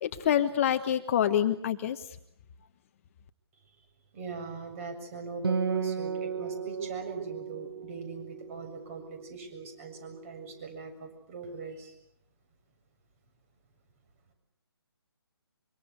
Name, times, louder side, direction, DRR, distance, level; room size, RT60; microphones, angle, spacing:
voice 1, 0.0-2.0, left 10 dB, 30° left, 8 dB, 1.4 m, -26 dB
voice 2, 4.1-11.9, right 4 dB, 30° right, 7 dB, 7.4 m, -40 dB
Acoustic guitar, 5.4-9.2, right 6 dB, 60° right, 1.9 m, -34 dB
25.0 x 24.5 x 8.1 m, 0.69 s
figure-of-eight pair, 150°, 14 cm